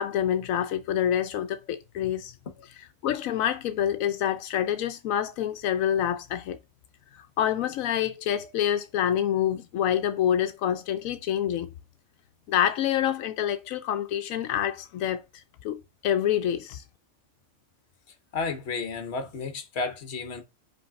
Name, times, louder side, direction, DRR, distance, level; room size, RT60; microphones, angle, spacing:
voice 1, 0.0-2.3 3.0-6.6 7.1-11.7 12.5-16.8, left 10 dB, 85° left, 1.0 m, -27 dB
voice 2, 18.3-20.4, left 4 dB, 55° left, 1.3 m, -32 dB
5.3 x 3.4 x 5.6 m
omnidirectional pair, 1.4 m